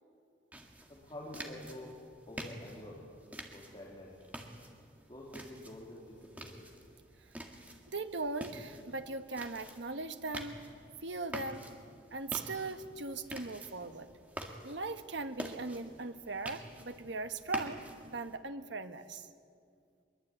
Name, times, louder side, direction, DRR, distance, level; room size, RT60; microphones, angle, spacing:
sound 1, 0.5-18.4, right 1 dB, 10° right, 1.9 m, -48 dB
voice 1, 0.9-2.0 2.3-3.0 3.5-4.2 5.1-6.6, left 1 dB, 25° left, -4 dB, 3.5 m, -48 dB
voice 2, 7.9-10.6 11.0-11.7 12.1-14.1 14.6-19.3, right 3 dB, 65° right, 8 dB, 1.3 m, -39 dB
23.0 x 22.5 x 8.9 m, 2.3 s
head